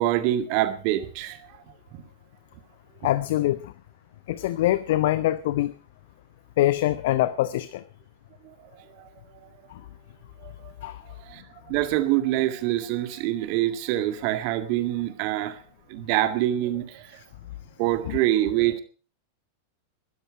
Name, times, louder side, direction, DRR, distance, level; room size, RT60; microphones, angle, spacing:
voice 1, 0.0-1.4 1.9-2.0 9.0-9.1 10.4-10.7 11.3-11.4 11.7-15.6 15.9-17.1 17.8-18.8, right 14 dB, 45° right, 10 dB, 1.9 m, -25 dB
voice 2, 3.0-3.6 4.3-5.7 6.6-7.8 10.8-11.0, left 14 dB, 55° left, 16 dB, 0.8 m, -23 dB
20.5 x 13.5 x 4.7 m, 0.37 s
figure-of-eight pair, 90°, 0 cm